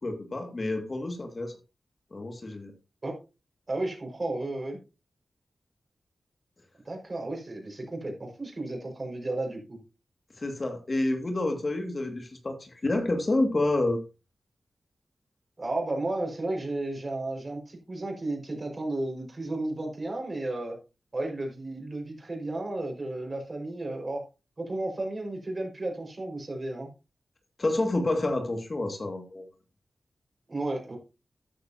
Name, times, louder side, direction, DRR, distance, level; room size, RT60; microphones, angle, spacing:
voice 1, 0.0-1.5 2.1-2.7 10.4-14.0 27.6-29.4, left 2 dB, 40° left, 4 dB, 2.2 m, -28 dB
voice 2, 3.7-4.8 6.8-9.8 15.6-20.8 21.1-24.2 24.6-26.9 30.5-31.0, right 2 dB, 40° right, 1 dB, 5.5 m, -33 dB
13.5 x 9.7 x 2.9 m, 0.30 s
cardioid pair, 70°, 0 cm